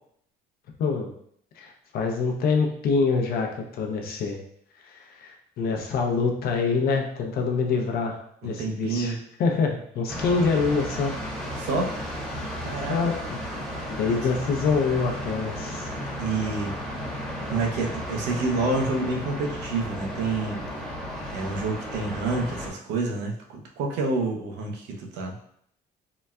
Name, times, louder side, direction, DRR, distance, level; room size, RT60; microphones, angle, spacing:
voice 1, 0.8-1.1 1.6-4.4 4.8-9.1 9.4-11.1 12.9-13.1 13.9-15.9, left 4 dB, 65° left, 2 dB, 0.6 m, -25 dB
voice 2, 8.4-9.2 11.5-11.9 12.6-13.2 14.1-14.2 16.2-16.7 17.4-20.6 21.3-25.3, right 3 dB, 85° right, 1 dB, 0.6 m, -28 dB
sound 1, 10.1-22.7, equal, 5° left, 0.9 m, -34 dB
3.9 x 2.2 x 2.2 m, 0.68 s
cardioid pair, 110°, 17 cm